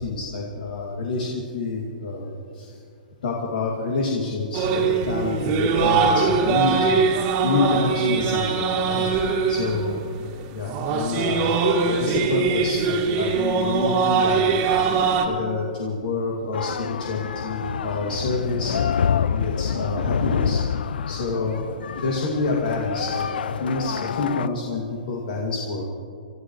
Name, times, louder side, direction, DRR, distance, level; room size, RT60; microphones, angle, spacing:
voice 1, 0.0-2.8 3.2-7.0 7.4-9.1 9.5-14.6 15.2-18.8 19.1-20.6 21.1-21.6 21.9-25.8, left 3 dB, 70° left, -2 dB, 2.4 m, -27 dB
sound 1, 4.5-15.3, right 5 dB, 30° right, 1.9 m, -22 dB
sound 2, 16.5-24.5, left 7 dB, 85° left, 0.4 m, -27 dB
27.0 x 14.0 x 3.2 m, 2.3 s
hypercardioid pair, 155°, 5 cm